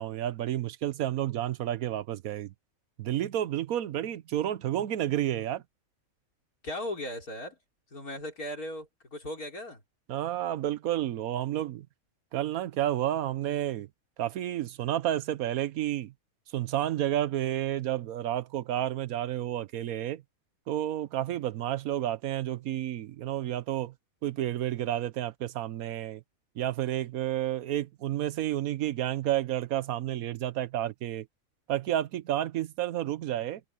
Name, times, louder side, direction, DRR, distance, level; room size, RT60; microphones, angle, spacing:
voice 1, 0.0-2.5 3.0-5.6 10.1-11.9 12.3-13.9 14.2-16.1 16.5-20.2 20.7-23.9 24.2-26.2 26.6-31.3 31.7-33.6, right 12 dB, 80° right, 1.2 m, -30 dB
voice 2, 6.6-7.6 7.9-9.8, left 1 dB, 85° left, 4.8 m, -37 dB
omnidirectional pair, 1.5 m